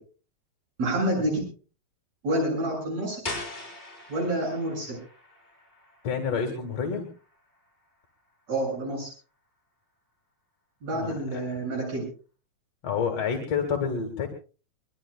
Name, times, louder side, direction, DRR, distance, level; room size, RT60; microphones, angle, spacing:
voice 1, 0.8-1.4 2.2-3.2 4.1-5.0 8.5-9.1 10.8-12.1, right 1 dB, 65° right, 0 dB, 9.1 m, -28 dB
sound 1, 3.2-8.9, left 2 dB, 15° left, 6.8 m, -42 dB
voice 2, 6.0-7.1 10.9-11.4 12.8-14.3, left 6 dB, 60° left, 4 dB, 3.0 m, -29 dB
23.0 x 22.0 x 2.3 m, 0.37 s
omnidirectional pair, 3.3 m